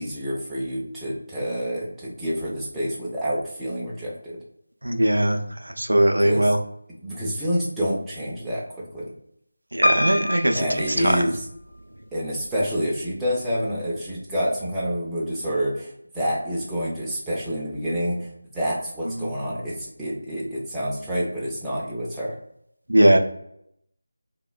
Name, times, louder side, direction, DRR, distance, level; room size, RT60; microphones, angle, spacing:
voice 1, 0.0-4.4 6.2-6.5 7.0-9.1 10.5-11.5 12.1-22.4, equal, 5° right, -8 dB, 0.4 m, -28 dB
voice 2, 4.8-5.4 5.8-6.6 9.7-10.6 11.0-11.1 22.9-23.2, right 1 dB, 80° right, 4 dB, 0.4 m, -19 dB
Piano, 9.8-11.8 12.4-13.1 13.5-13.6 13.8-13.9, equal, 85° left, 0.5 m, -26 dB
3.2 x 2.1 x 2.3 m, 0.74 s
figure-of-eight pair, 165°, 0 cm